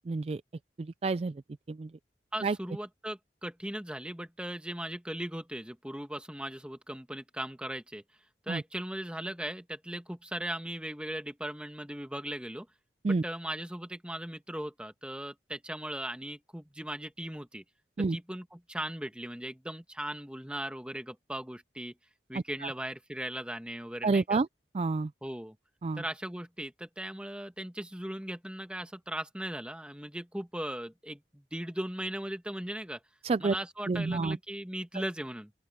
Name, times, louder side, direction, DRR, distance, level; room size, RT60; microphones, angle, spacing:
voice 1, 0.1-0.4 0.8-1.4 1.7-1.9 2.4-2.6 8.5-8.6 13.0-13.2 18.0-18.2 22.3-22.7 24.0-24.5 24.7-25.1 25.8-26.0 33.2-33.5 33.9-34.4, right 3 dB, 35° right, 0.3 m, -29 dB
voice 2, 2.3-8.0 8.4-12.7 13.1-17.6 18.0-21.9 22.3-24.4 25.2-25.6 25.9-33.0 33.4-35.5, right 1 dB, 5° right, 1.6 m, -38 dB
open air
head